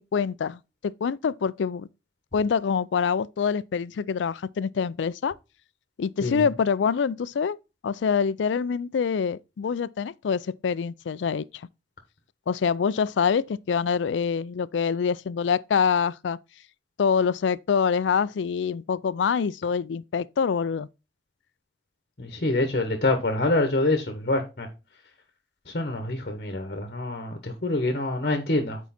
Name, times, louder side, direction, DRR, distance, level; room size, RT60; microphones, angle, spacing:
voice 1, 0.1-1.9 2.3-5.4 6.0-7.6 7.8-11.6 12.5-16.4 17.0-20.9, left 6 dB, 85° left, 0.4 m, -25 dB
voice 2, 22.2-24.7 25.7-28.8, left 2 dB, 55° left, 1.2 m, -26 dB
8.3 x 4.6 x 4.2 m
head